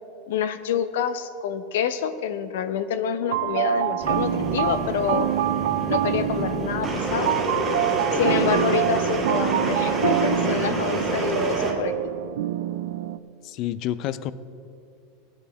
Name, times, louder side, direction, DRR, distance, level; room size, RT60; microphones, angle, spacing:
voice 1, 0.3-5.3 5.9-7.3 8.1-11.9, left 8 dB, 75° left, 11 dB, 0.7 m, -27 dB
sound 1, 3.3-13.2, right 12 dB, 75° right, 0.3 m, -26 dB
sound 2, 4.0-11.7, right 2 dB, 10° right, 1.7 m, -28 dB
voice 2, 13.4-14.3, left 12 dB, 35° left, 15 dB, 0.4 m, -29 dB
17.0 x 9.8 x 3.5 m, 2.6 s
supercardioid pair, 170°, 0 cm